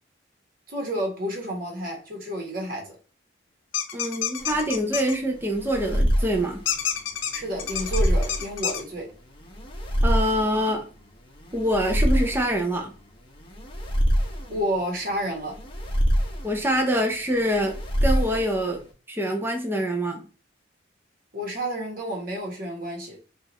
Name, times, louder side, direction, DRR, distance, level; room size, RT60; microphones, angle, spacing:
voice 1, 0.7-3.0 7.3-9.1 14.5-15.6 21.3-23.2, equal, 45° right, 1.4 m, -30 dB
sound 1, 3.7-5.2 6.7-8.8, left 9 dB, 85° left, 0.6 m, -28 dB
voice 2, 3.9-6.6 10.0-10.9 11.5-12.9 16.4-17.7 18.0-18.8 19.1-20.2, equal, 10° right, 0.6 m, -25 dB
sound 2, 4.4-18.9, equal, 25° left, 0.7 m, -27 dB
4.6 x 2.5 x 3.0 m
head